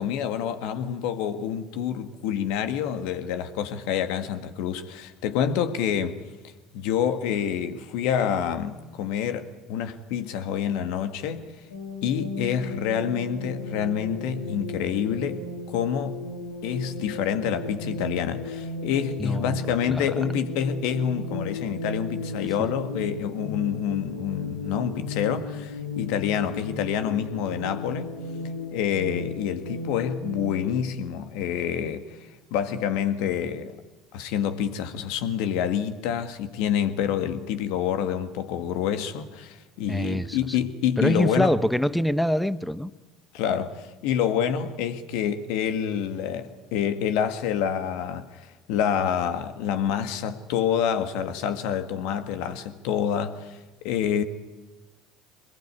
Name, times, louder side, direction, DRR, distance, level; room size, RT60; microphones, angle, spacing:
voice 1, 0.0-6.2 6.7-11.5 12.0-16.2 16.6-28.1 28.7-32.2 32.5-33.8 34.1-41.5 43.3-53.6 53.8-54.2, left 8 dB, 70° left, 1.8 m, -27 dB
sound 1, 11.7-30.9, left 2 dB, 85° left, 2.9 m, -35 dB
voice 2, 19.2-19.6 19.9-20.0 39.9-40.4 41.0-42.9, equal, 5° left, 1.1 m, -24 dB
23.5 x 21.0 x 9.8 m
hypercardioid pair, 70°, 0 cm